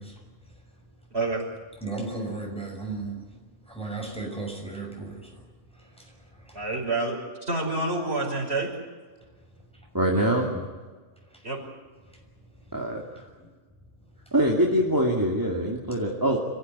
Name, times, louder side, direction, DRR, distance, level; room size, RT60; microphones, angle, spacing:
voice 1, 0.0-1.1 1.8-6.7 9.2-9.9 11.3-11.5 12.0-13.5 14.0-14.3, right 3 dB, 5° left, 0 dB, 6.4 m, -38 dB
voice 2, 1.1-1.5 6.5-8.7 11.4-11.6, right 2 dB, 60° right, 0 dB, 5.9 m, -28 dB
voice 3, 9.9-10.5 12.7-13.2 14.3-16.4, right 1 dB, 15° right, -1 dB, 2.6 m, -24 dB
27.0 x 15.5 x 9.8 m, 1.4 s
omnidirectional pair, 1.2 m